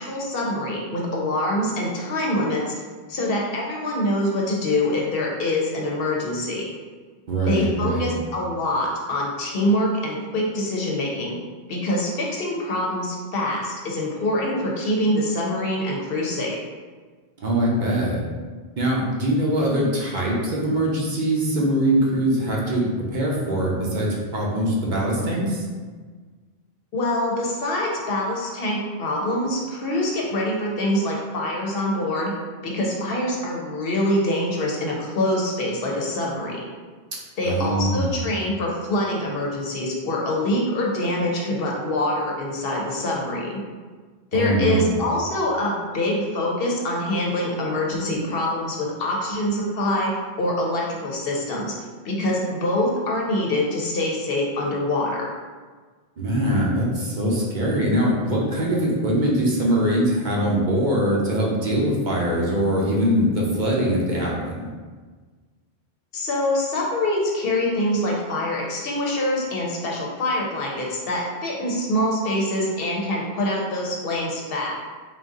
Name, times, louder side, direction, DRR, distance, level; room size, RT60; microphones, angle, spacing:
voice 1, 0.0-2.7 3.1-6.6 7.5-11.4 11.7-16.6 26.9-32.3 32.6-36.6 37.4-43.6 44.3-50.1 50.4-51.7 52.0-55.3 66.1-74.7, left 1 dB, 70° left, -2 dB, 0.9 m, -25 dB
voice 2, 7.3-8.1 17.4-18.2 18.8-22.9 23.1-25.6 37.5-38.2 44.3-45.0 56.2-64.7, right 1 dB, 50° right, -4 dB, 0.8 m, -22 dB
3.9 x 2.6 x 3.7 m, 1.5 s
omnidirectional pair, 1.0 m